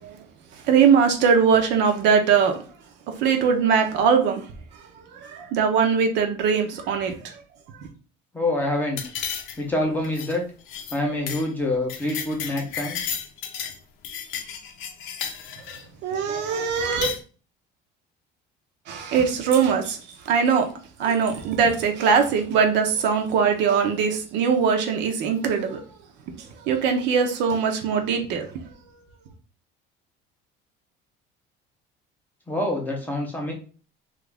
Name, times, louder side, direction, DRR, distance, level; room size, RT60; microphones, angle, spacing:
voice 1, 0.5-2.6 3.2-4.4 5.1-7.3 16.0-17.1 18.9-20.7 21.0-25.8 26.4-28.5, right 6 dB, 60° right, 0.6 m, -21 dB
voice 2, 8.3-9.0 9.6-10.4 10.9-13.0 32.5-33.5, left 1 dB, 10° left, 0.5 m, -26 dB
sound 1, 9.0-9.8 10.0-10.3 10.7-11.0 11.3-11.5 11.7-13.8 14.0-15.8 16.8-17.2, left 8 dB, 70° left, 0.6 m, -33 dB
2.9 x 2.4 x 3.3 m
cardioid pair, 170°, 21 cm